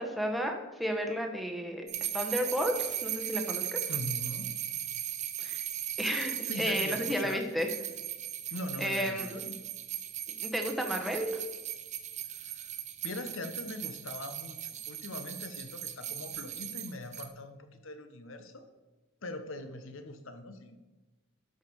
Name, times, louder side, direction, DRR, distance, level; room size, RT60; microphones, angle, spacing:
voice 1, 0.0-1.8 2.1-3.8 5.4-5.6 6.0-7.7 8.8-9.3 10.4-11.4, equal, ahead, 2 dB, 1.0 m, -32 dB
sound 1, 1.9-17.3, right 10 dB, 30° right, 0.7 m, -37 dB
voice 2, 3.9-4.5 6.5-7.4 8.5-9.6 12.3-18.7 19.2-20.8, left 2 dB, 65° left, 7 dB, 1.0 m, -41 dB
12.0 x 5.5 x 4.7 m, 1.2 s
head